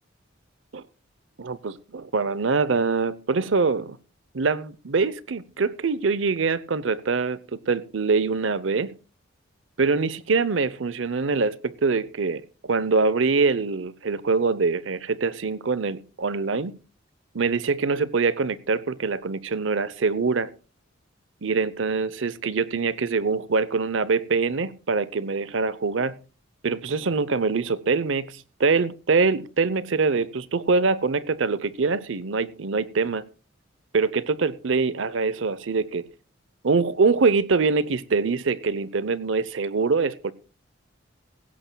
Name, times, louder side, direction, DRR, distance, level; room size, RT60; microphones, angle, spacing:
voice 1, 1.4-4.0 4.3-8.9 9.8-16.7 17.3-20.5 21.4-26.2 26.6-33.3 33.9-36.1 36.6-40.3, right 4 dB, 70° right, 0.7 m, -24 dB
16.0 x 16.0 x 2.3 m
head